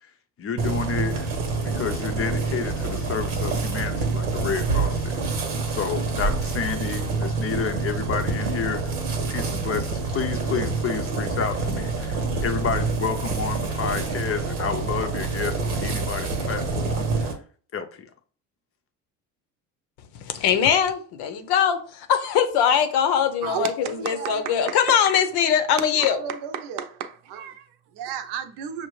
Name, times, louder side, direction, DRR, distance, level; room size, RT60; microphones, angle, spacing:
voice 1, 0.4-1.3 1.6-5.2 5.7-8.9 9.3-17.4 17.7-18.1, left 6 dB, 30° left, 0.6 m, -30 dB
sound 1, 0.6-17.3, right 4 dB, 90° right, 1.0 m, -27 dB
voice 2, 20.2-26.2, left 8 dB, 60° left, 0.7 m, -22 dB
voice 3, 23.4-25.0 25.9-27.6 28.0-28.9, right 8 dB, 60° right, 0.7 m, -32 dB
5.7 x 2.1 x 3.1 m
hypercardioid pair, 75°, 45 cm